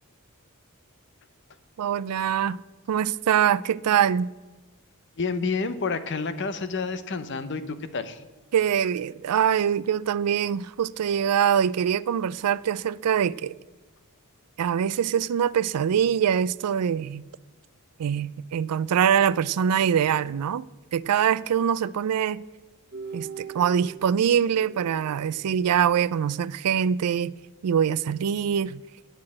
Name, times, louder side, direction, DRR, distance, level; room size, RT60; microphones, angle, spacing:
voice 1, 1.8-2.6 2.9-4.3 8.5-13.5 14.6-17.2 18.0-20.7 20.9-22.4 23.1-27.3 27.6-28.8, right 8 dB, 90° right, 0.4 m, -24 dB
voice 2, 5.2-8.2, left 4 dB, 55° left, 0.8 m, -29 dB
sound 1, 22.9-26.2, right 5 dB, 45° right, 1.0 m, -42 dB
9.9 x 5.9 x 8.5 m
head